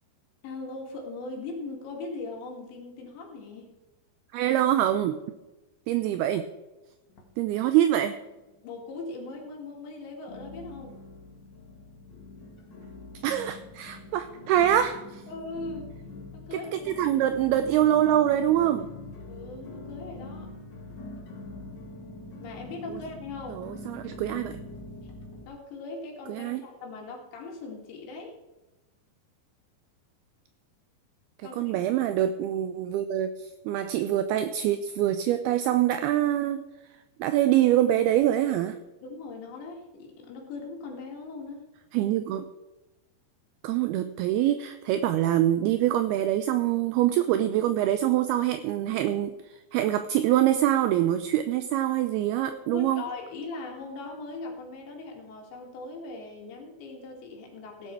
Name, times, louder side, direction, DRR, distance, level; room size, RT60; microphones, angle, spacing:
voice 1, 0.4-3.7 8.6-11.0 15.3-15.9 16.3-16.9 19.3-20.5 22.4-23.7 25.5-28.4 31.4-31.9 39.0-41.6 52.5-57.9, left 3 dB, 85° left, 0 dB, 4.7 m, -40 dB
voice 2, 4.3-5.2 5.9-6.5 7.4-8.2 13.2-15.2 17.0-18.9 23.5-24.6 26.3-26.6 31.6-36.6 37.2-38.8 41.9-42.5 43.6-53.0, right 12 dB, 80° right, 9 dB, 2.4 m, -25 dB
sound 1, 7.1-8.0 8.3-8.9 9.4-9.5 10.3-25.4, left 2 dB, 50° left, 1.4 m, -44 dB
16.5 x 10.5 x 4.7 m, 1.1 s
omnidirectional pair, 4.9 m